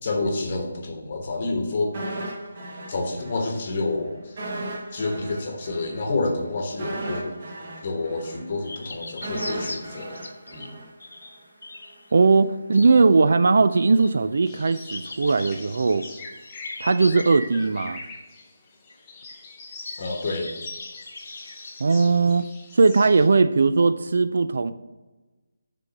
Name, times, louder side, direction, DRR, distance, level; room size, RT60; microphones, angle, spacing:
voice 1, 0.0-1.9 2.9-4.3 4.9-7.3 7.8-10.7 20.0-20.5, left 3 dB, 30° left, 1.1 m, -28 dB
sound 1, 1.9-3.6 3.8-4.0 4.4-11.4 11.7-11.9, right 2 dB, 35° right, 1.3 m, -35 dB
sound 2, 8.6-10.7 11.0-12.4 12.7-13.1 13.7-14.3 14.7-17.8 18.9-19.0 19.3-19.4 19.7-22.3, left 2 dB, 85° left, 0.9 m, -41 dB
voice 2, 12.1-16.1 16.8-18.0 21.8-22.5 22.7-24.7, right 4 dB, 55° right, 0.3 m, -19 dB
sound 3, 14.4-23.3, left 3 dB, 15° left, 0.7 m, -42 dB
6.6 x 3.7 x 6.1 m
hypercardioid pair, 175°, 0 cm